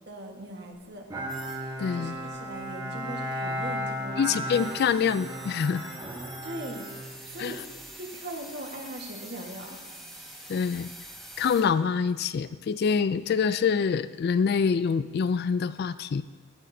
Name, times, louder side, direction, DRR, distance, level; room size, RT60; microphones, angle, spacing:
voice 1, 0.0-1.0 1.9-4.4 6.4-6.9 7.2-7.7 8.0-9.8 10.4-10.6, right 1 dB, 55° right, 1 dB, 1.5 m, -40 dB
Bowed string instrument, 1.1-7.8, equal, 20° right, 1.3 m, -35 dB
sound 1, 1.3-11.6, right 1 dB, ahead, 1.5 m, -47 dB
voice 2, 1.8-2.2 4.2-5.9 7.4-7.5 10.5-10.9 11.4-16.2, left 6 dB, 50° left, 14 dB, 0.3 m, -26 dB
15.5 x 9.9 x 2.7 m, 1.3 s
head